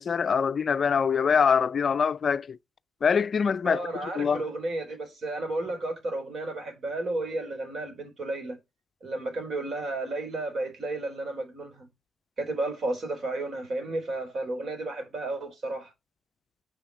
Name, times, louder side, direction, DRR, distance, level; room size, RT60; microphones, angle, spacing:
voice 1, 0.0-2.6 3.0-3.8 4.2-4.4, left 6 dB, 45° left, 0.4 m, -24 dB
voice 2, 3.6-8.6 9.0-11.9 12.4-15.9, right 2 dB, 50° right, 3.8 m, -32 dB
7.0 x 5.7 x 5.4 m
cardioid pair, 90°, 0 cm